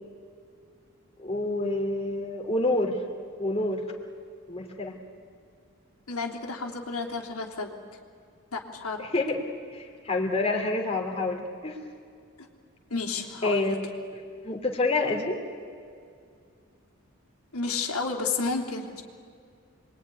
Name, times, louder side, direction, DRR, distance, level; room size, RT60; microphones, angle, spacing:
voice 1, 1.2-3.0 3.4-3.9 4.5-5.0 9.0-9.4 9.7-11.8 13.4-13.9 14.1-15.4, left 2 dB, 25° left, 1 dB, 2.7 m, -28 dB
voice 2, 6.1-7.8 8.5-9.1 12.4-12.5 12.9-13.7 17.5-19.0, left 4 dB, 90° left, 1 dB, 3.2 m, -31 dB
27.5 x 22.0 x 9.8 m, 2.3 s
head